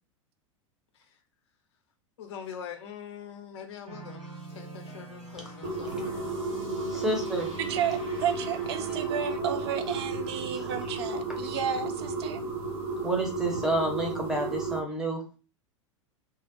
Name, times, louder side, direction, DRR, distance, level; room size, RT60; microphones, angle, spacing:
voice 1, 2.2-6.4, left 7 dB, 55° left, 0.5 m, -43 dB
sound 1, 3.9-10.1, right 2 dB, 80° right, 1.0 m, -45 dB
sound 2, 5.6-14.8, right 3 dB, 35° right, 1.0 m, -33 dB
voice 2, 6.9-7.5 10.5-10.7 11.5-11.6 13.0-15.4, right 1 dB, 5° right, 0.7 m, -30 dB
voice 3, 7.6-12.4, right 8 dB, 55° right, 0.4 m, -32 dB
2.7 x 2.0 x 2.5 m
figure-of-eight pair, 90°, 17 cm